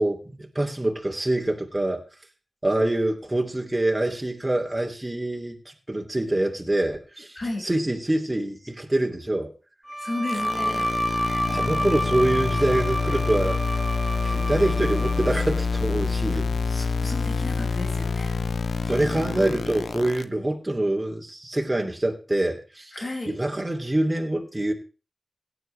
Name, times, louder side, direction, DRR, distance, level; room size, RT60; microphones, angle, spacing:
voice 1, 0.0-2.0 2.6-5.6 5.9-7.4 7.6-9.5 11.5-13.6 14.2-16.5 18.9-22.9 23.3-24.7, right 1 dB, 25° right, 2.9 m, -25 dB
voice 2, 7.4-7.7 10.0-10.9 11.3-11.8 16.3-18.3 22.9-23.3, left 2 dB, 50° left, 6.1 m, -34 dB
Bowed string instrument, 9.9-15.7, equal, ahead, 4.9 m, -29 dB
sound 1, 10.3-20.2, left 4 dB, 80° left, 0.7 m, -27 dB
17.0 x 9.7 x 3.4 m
cardioid pair, 40°, 0 cm